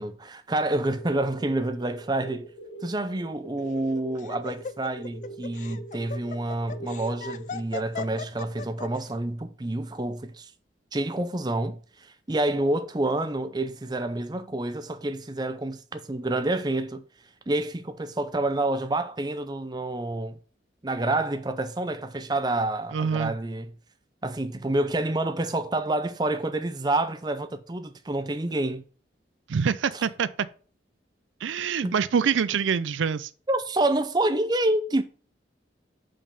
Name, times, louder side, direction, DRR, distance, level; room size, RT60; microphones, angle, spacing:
voice 1, 0.0-2.5 2.8-10.5 10.9-17.0 17.5-20.4 20.8-23.7 24.2-28.8 29.9-30.0 31.8-31.9 33.5-35.0, right 2 dB, 20° right, 0.6 m, -28 dB
sound 1, 0.8-7.6, right 2 dB, 90° left, 1.0 m, -43 dB
Laughter, 3.6-9.0, left 5 dB, 40° left, 0.3 m, -38 dB
voice 2, 22.9-23.3 29.5-30.3 31.4-33.3, right 6 dB, 85° right, 0.4 m, -25 dB
5.4 x 5.3 x 5.2 m
head